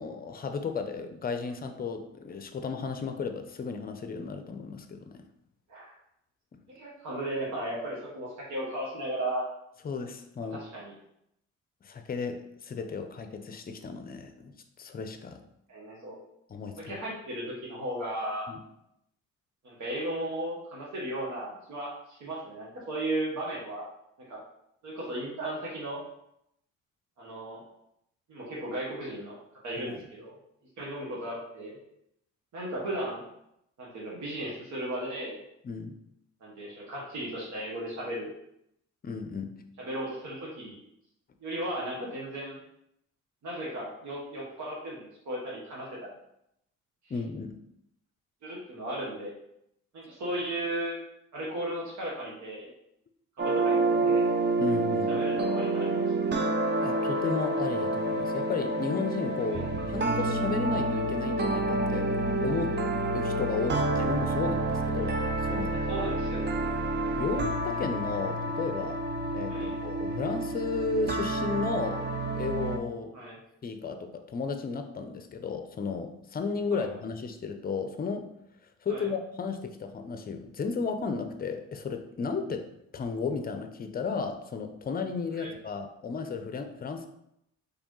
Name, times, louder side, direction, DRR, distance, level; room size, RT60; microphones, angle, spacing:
voice 1, 0.0-5.2 9.8-10.6 11.8-14.5 14.8-15.4 16.5-17.0 18.5-18.6 29.8-30.0 35.6-35.9 39.0-39.5 47.1-47.6 54.6-55.2 56.3-56.5 56.8-59.6 59.9-62.1 62.4-62.7 63.1-65.8 67.2-69.0 69.3-72.1 72.3-73.1 73.6-78.2 78.8-82.6 82.9-87.1, left 4 dB, 30° left, 7 dB, 0.5 m, -34 dB
voice 2, 6.7-9.4 10.5-10.9 15.7-16.2 16.8-18.5 19.6-23.9 24.3-24.4 24.8-26.0 27.2-27.6 28.3-29.4 29.6-30.4 30.8-31.8 32.5-33.2 33.8-35.4 36.4-38.3 39.8-40.8 41.4-42.6 43.4-46.1 48.4-49.3 49.9-51.0 51.3-52.7 53.4-54.2 55.1-56.1 59.5-59.7 65.9-66.5 69.5-69.8 73.1-73.4 76.7-76.9 78.9-79.1 85.4-85.5, right 1 dB, 70° right, -4 dB, 1.2 m, -35 dB
sound 1, 53.4-72.8, right 2 dB, 35° right, 0.5 m, -28 dB
4.2 x 3.3 x 3.1 m, 0.79 s
cardioid pair, 90°, 30 cm